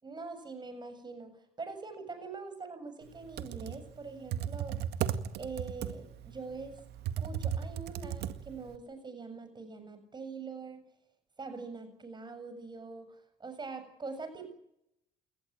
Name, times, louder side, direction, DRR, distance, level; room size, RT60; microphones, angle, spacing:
voice 1, 0.0-4.8 5.4-6.8 7.2-10.8 11.4-14.5, right 4 dB, 25° right, 9 dB, 7.3 m, -43 dB
Computer keyboard, 3.2-8.8, right 9 dB, 75° right, 2.0 m, -36 dB
29.0 x 18.5 x 9.0 m, 0.80 s
cardioid pair, 110°, 17 cm